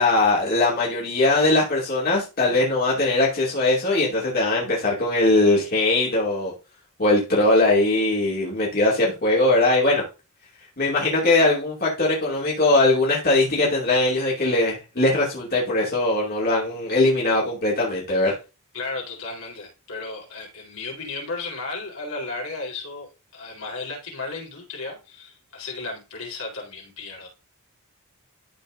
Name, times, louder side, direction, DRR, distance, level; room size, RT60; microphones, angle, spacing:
voice 1, 0.0-6.5 7.0-10.0 10.8-18.3, left 2 dB, 45° left, 2.6 m, -20 dB
voice 2, 18.7-27.3, left 3 dB, 75° left, 4.0 m, -34 dB
13.0 x 4.5 x 2.6 m
head